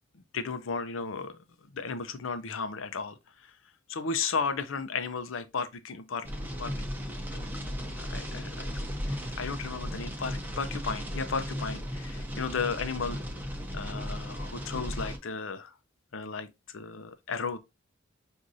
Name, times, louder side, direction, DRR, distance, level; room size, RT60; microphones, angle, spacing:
voice 1, 0.1-1.4 1.7-3.5 3.9-6.7 7.3-8.7 9.1-15.7 16.1-17.6, left 5 dB, 75° left, 0.6 m, -35 dB
sound 1, 6.2-15.2, equal, 10° right, 0.8 m, -36 dB
6.1 x 2.6 x 2.5 m
head